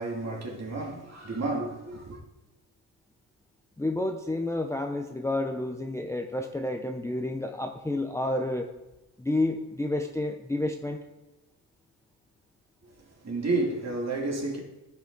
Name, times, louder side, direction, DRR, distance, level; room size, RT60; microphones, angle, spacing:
voice 1, 0.0-2.2 13.2-14.6, right 2 dB, 40° right, 2.5 m, -31 dB
voice 2, 3.8-8.7 9.2-11.0, left 2 dB, 5° left, 0.7 m, -30 dB
14.5 x 5.7 x 4.0 m
cardioid pair, 100°, 41 cm